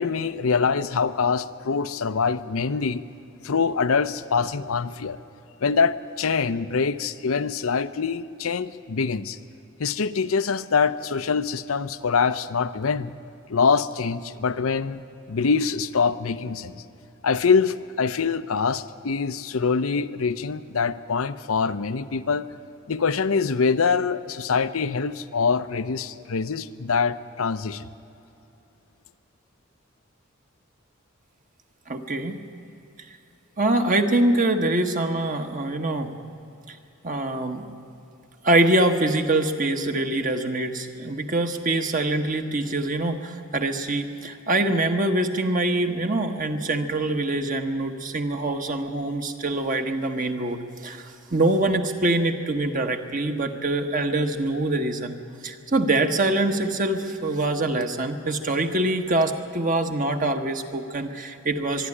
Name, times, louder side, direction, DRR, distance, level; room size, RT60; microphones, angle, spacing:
voice 1, 0.0-3.0 3.4-5.2 5.6-9.4 9.8-13.1 13.5-15.0 15.3-16.8 17.2-22.4 22.9-27.9, left 5 dB, 85° left, 13 dB, 0.7 m, -24 dB
voice 2, 31.9-32.4 33.6-36.1 36.7-36.8 37.0-37.6 38.4-55.2 55.4-61.9, right 2 dB, 40° right, 5 dB, 1.1 m, -24 dB
22.5 x 12.0 x 9.8 m, 2.8 s
head